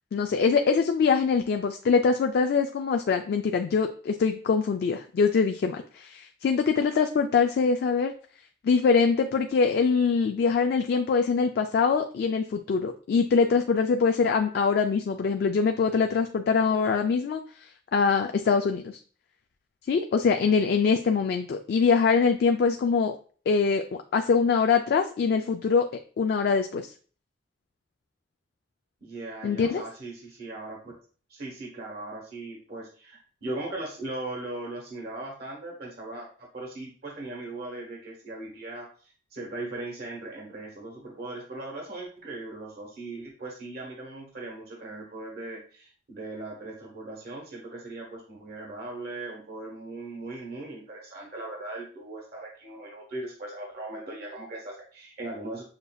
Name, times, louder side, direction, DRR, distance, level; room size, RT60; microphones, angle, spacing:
voice 1, 0.1-8.1 8.6-17.4 17.9-19.0 19.9-23.1 23.5-23.8 24.1-25.9 26.2-26.9 29.4-29.8, left 5 dB, 60° left, 5 dB, 0.3 m, -23 dB
voice 2, 29.0-31.0 31.3-55.6, right 2 dB, 60° right, -2 dB, 1.2 m, -39 dB
6.5 x 2.6 x 2.3 m, 0.42 s
head